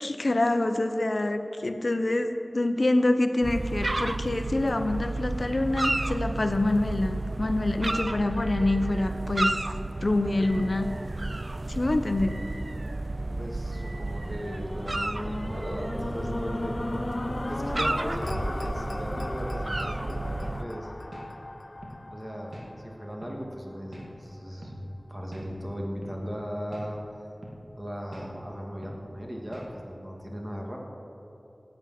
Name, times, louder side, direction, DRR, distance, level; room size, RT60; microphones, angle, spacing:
voice 1, 0.0-9.6 10.0-10.9 11.7-12.4, left 2 dB, 70° left, 8 dB, 0.8 m, -26 dB
sound 1, 3.4-20.6, right 2 dB, 50° right, 0.4 m, -32 dB
sound 2, 13.1-23.4 24.0-24.1, left 2 dB, 45° left, 0.3 m, -36 dB
voice 2, 13.4-16.8 17.5-20.9 22.1-27.0 27.8-30.8, equal, 25° right, -1 dB, 2.5 m, -37 dB
sound 3, 19.0-19.2 19.7-19.9 20.4-20.6 21.1-21.3 21.8-22.0 22.5-22.7 23.2-23.4 23.9-24.1 24.6-24.8 25.3-25.5 26.0-26.2 26.7-26.9 27.4-27.6 28.1-28.3 28.8-29.0 29.5-29.7, right 1 dB, 70° right, 2.3 m, -44 dB
17.5 x 8.8 x 6.0 m, 2.9 s
wide cardioid pair, 45°, 0 cm